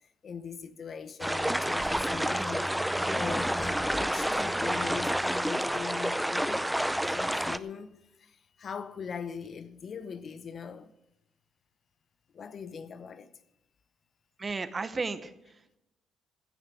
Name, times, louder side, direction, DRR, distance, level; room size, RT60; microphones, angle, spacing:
voice 1, 0.2-2.7 3.1-6.6 7.1-7.9 8.6-10.9 12.3-13.3, left 6 dB, 50° left, 0.9 m, -40 dB
sound 1, 1.2-7.6, equal, 5° right, 0.6 m, -29 dB
voice 2, 14.4-15.8, right 4 dB, 30° right, 1.0 m, -35 dB
15.5 x 6.6 x 8.6 m
cardioid pair, 90°, 0 cm